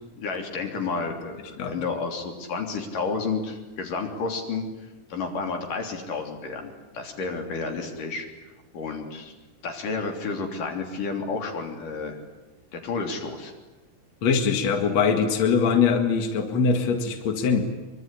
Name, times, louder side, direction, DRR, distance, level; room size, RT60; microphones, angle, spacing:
voice 1, 0.2-4.6 5.1-8.3 8.7-9.3 9.6-12.2 12.7-13.5, left 4 dB, 85° left, 4 dB, 4.9 m, -31 dB
voice 2, 14.2-17.6, left 5 dB, 60° left, 6 dB, 3.1 m, -22 dB
25.0 x 24.0 x 9.9 m, 1.1 s
omnidirectional pair, 3.6 m